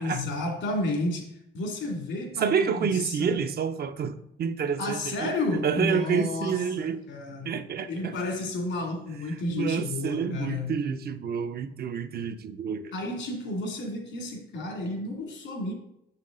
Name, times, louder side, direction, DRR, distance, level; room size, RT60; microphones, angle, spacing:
voice 1, 0.0-3.4 4.8-7.6 7.9-10.8 12.9-15.7, left 2 dB, 75° left, 1 dB, 2.3 m, -31 dB
voice 2, 2.4-7.0 7.4-8.1 9.5-12.9, right 6 dB, 50° right, 9 dB, 0.6 m, -29 dB
6.8 x 5.8 x 3.8 m, 0.81 s
cardioid pair, 90°, 20 cm